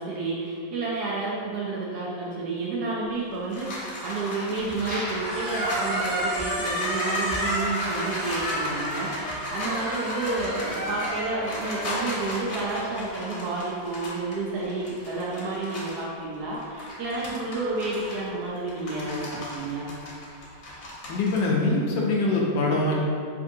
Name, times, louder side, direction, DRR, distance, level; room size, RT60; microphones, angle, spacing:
voice 1, 0.0-19.9, right 3 dB, 70° right, -5 dB, 1.0 m, -30 dB
sound 1, 3.1-16.1 16.5-21.4, left 1 dB, 55° left, 1.1 m, -36 dB
Squeak, 4.7-12.9, equal, 55° right, 2.1 m, -31 dB
voice 2, 21.1-23.0, left 2 dB, 75° left, -3 dB, 1.2 m, -23 dB
4.9 x 2.7 x 2.7 m, 2.4 s
omnidirectional pair, 2.1 m